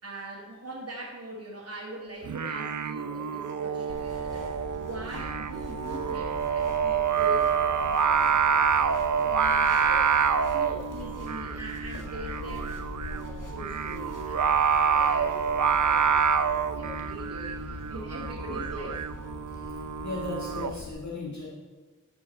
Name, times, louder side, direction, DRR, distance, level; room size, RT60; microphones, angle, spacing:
voice 1, 0.0-4.5 4.8-8.9 9.2-10.1 10.4-19.1, right 1 dB, 50° right, -6 dB, 1.7 m, -42 dB
Singing, 2.2-20.7, right 6 dB, 70° right, 0.5 m, -27 dB
sound 1, 3.9-20.9, left 3 dB, 80° left, 1.2 m, -42 dB
voice 2, 19.5-21.5, left 2 dB, 60° left, -3 dB, 1.6 m, -37 dB
13.5 x 5.4 x 4.4 m, 1.3 s
wide cardioid pair, 55°, 31 cm